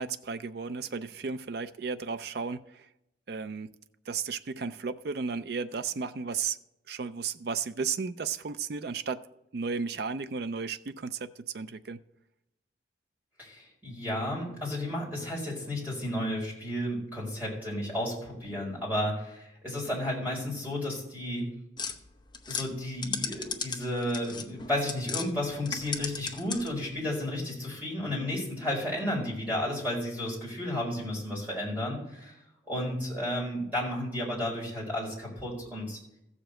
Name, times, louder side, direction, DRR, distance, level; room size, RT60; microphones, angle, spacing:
voice 1, 0.0-2.9 3.3-3.7 4.1-6.6 6.9-9.3 9.5-12.0, right 5 dB, 55° right, 0.4 m, -34 dB
voice 2, 13.4-21.5 22.5-32.4 32.7-36.0, left 1 dB, 10° right, 4.5 m, -32 dB
sound 1, 21.8-25.3 25.6-26.9, left 6 dB, 25° left, 0.8 m, -36 dB
14.5 x 5.0 x 7.6 m
head